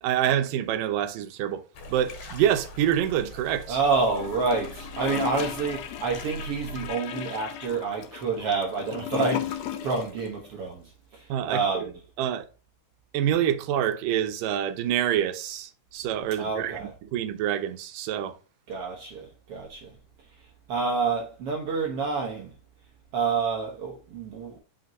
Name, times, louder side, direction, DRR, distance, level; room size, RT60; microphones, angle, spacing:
voice 1, 0.0-1.6 1.9-3.8 11.3-11.9 12.2-12.5 13.1-18.4, right 10 dB, 80° right, 2.4 m, -26 dB
sound 1, 1.7-6.9, right 1 dB, 70° left, 3.0 m, -42 dB
voice 2, 3.7-10.8 11.1-11.9 16.4-16.9 18.7-19.9 20.7-22.5 23.1-24.6, right 4 dB, 60° right, 1.6 m, -28 dB
Gurgling / Toilet flush, 4.1-10.2 10.4-10.5, left 11 dB, 85° left, 1.4 m, -35 dB
6.0 x 5.1 x 3.0 m
omnidirectional pair, 3.9 m